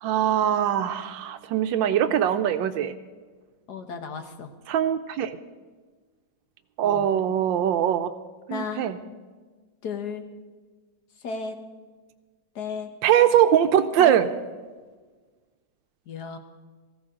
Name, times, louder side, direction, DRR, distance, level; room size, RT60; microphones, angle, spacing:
voice 1, 0.0-3.0 4.7-5.4 6.8-8.1 8.5-9.0 13.0-14.3, right 10 dB, 85° right, 9 dB, 1.4 m, -22 dB
voice 2, 3.7-4.5 6.8-7.1 8.5-8.9 9.8-10.3 11.2-11.6 12.5-12.9 14.0-14.1 16.1-16.4, left 5 dB, 60° left, 7 dB, 1.7 m, -33 dB
19.0 x 15.0 x 3.8 m, 1.4 s
omnidirectional pair, 2.0 m